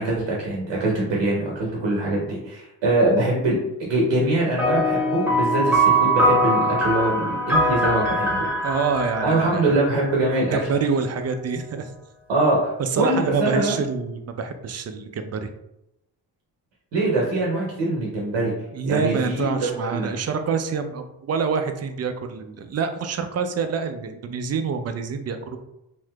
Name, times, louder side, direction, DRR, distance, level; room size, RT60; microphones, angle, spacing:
voice 1, 0.0-8.5 9.2-10.6 12.3-13.8 16.9-18.5 18.8-20.1, right 2 dB, 75° right, -3 dB, 0.9 m, -23 dB
sound 1, 4.6-10.4, right 1 dB, 5° right, 1.0 m, -22 dB
voice 2, 8.6-9.8 10.5-11.9 12.8-15.5 18.7-25.6, right 5 dB, 35° right, 8 dB, 0.4 m, -26 dB
3.4 x 2.6 x 2.2 m, 0.86 s
hypercardioid pair, 40°, 46 cm